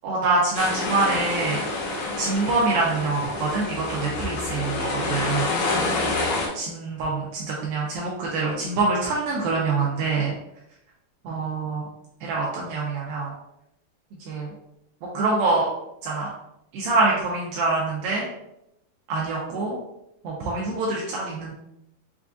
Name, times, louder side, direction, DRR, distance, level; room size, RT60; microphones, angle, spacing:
voice 1, 0.0-5.5 6.5-10.3 11.3-11.8 12.3-13.3 14.3-14.5 15.1-15.7 16.0-16.3 16.7-18.3 19.1-19.8 20.2-21.5, right 3 dB, 85° right, -3 dB, 2.1 m, -25 dB
sound 1, 0.5-6.5, left 3 dB, 80° left, 1.9 m, -27 dB
6.7 x 2.4 x 2.4 m, 0.82 s
omnidirectional pair, 4.9 m